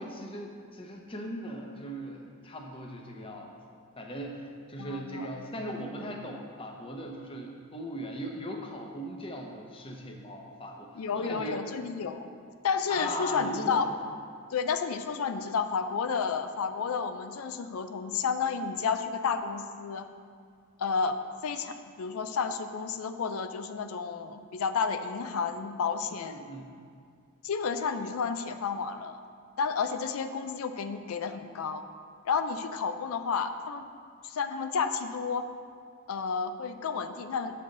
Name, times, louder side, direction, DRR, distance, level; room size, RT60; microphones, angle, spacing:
voice 1, 0.0-3.6 4.0-11.7 12.9-13.8 26.1-26.7, equal, 25° left, 2 dB, 0.7 m, -39 dB
voice 2, 4.8-5.3 11.0-12.3 12.6-13.9 14.5-20.1 20.8-21.2 21.4-26.4 27.4-29.2 29.6-31.8 32.2-33.9 34.2-35.5 36.1-37.6, left 5 dB, 90° left, 9 dB, 0.4 m, -31 dB
7.6 x 5.6 x 3.8 m, 2.2 s
head